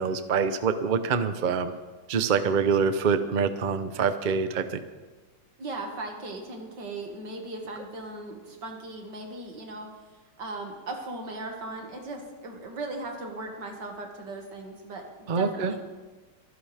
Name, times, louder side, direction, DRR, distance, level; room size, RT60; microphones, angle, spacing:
voice 1, 0.0-1.7 2.1-4.8 15.3-15.7, right 6 dB, 55° right, 10 dB, 0.5 m, -25 dB
voice 2, 5.6-9.9 10.4-15.8, right 2 dB, 70° right, 2 dB, 2.6 m, -38 dB
24.5 x 11.0 x 3.5 m, 1.3 s
omnidirectional pair, 2.0 m